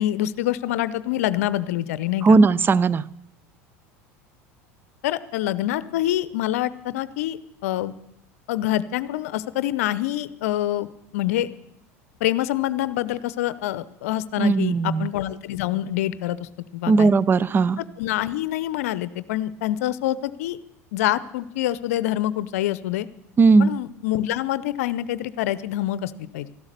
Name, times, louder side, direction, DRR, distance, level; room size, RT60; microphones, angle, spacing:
voice 1, 0.0-2.4 5.0-7.9 8.5-11.5 12.2-17.1 18.0-20.6 20.9-23.1 23.6-26.5, left 13 dB, 75° left, 16 dB, 0.6 m, -26 dB
voice 2, 2.2-3.1 14.4-15.1 16.9-17.8 23.4-23.7, right 4 dB, 25° right, 20 dB, 0.5 m, -17 dB
13.0 x 12.0 x 6.7 m, 0.80 s
hypercardioid pair, 80°, 8 cm